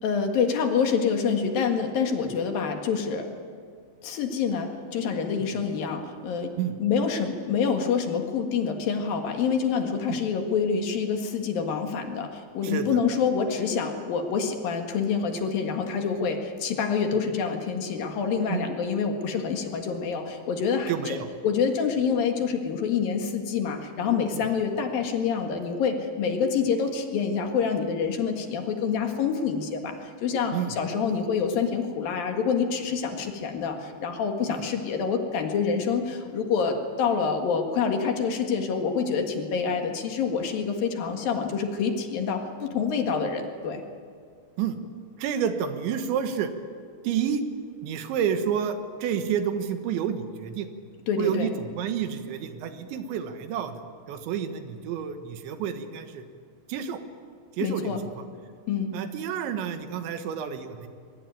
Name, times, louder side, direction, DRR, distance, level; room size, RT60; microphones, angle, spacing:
voice 1, 0.0-3.3 4.0-6.5 6.8-21.2 21.4-43.8 51.1-51.5 57.6-58.0 58.7-58.9, left 6 dB, 60° left, 4 dB, 3.2 m, -27 dB
voice 2, 12.6-13.0 18.5-18.6 20.9-21.3 24.3-24.4 30.5-30.7 34.5-34.6 44.6-44.8 45.2-46.5 47.0-47.4 47.8-50.7 51.2-53.8 54.1-56.3 56.7-57.0 57.6-58.2 58.9-60.9, right 8 dB, 80° right, 8 dB, 3.6 m, -29 dB
23.0 x 22.5 x 9.2 m, 2.1 s
omnidirectional pair, 5.2 m